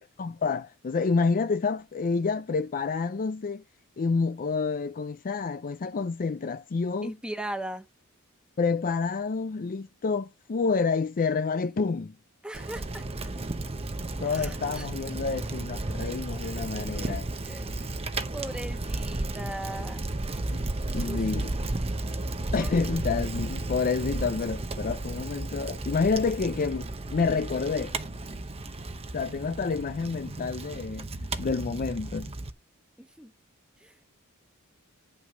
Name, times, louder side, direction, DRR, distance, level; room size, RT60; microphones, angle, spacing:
voice 1, 0.2-3.6 4.0-7.1 8.6-12.2 14.2-17.3 20.9-21.5 22.5-28.0 29.1-31.1 31.4-32.3, left 4 dB, 40° left, 0.4 m, -28 dB
voice 2, 7.0-7.9 12.4-13.0 14.2-14.9 16.9-17.7 18.3-20.1 20.8-21.4 22.5-22.8 33.0-33.3 33.8-33.9, right 1 dB, 5° right, 1.2 m, -39 dB
Bicycle, 12.5-32.5, right 2 dB, 30° right, 0.8 m, -33 dB
9.3 x 6.0 x 5.2 m
head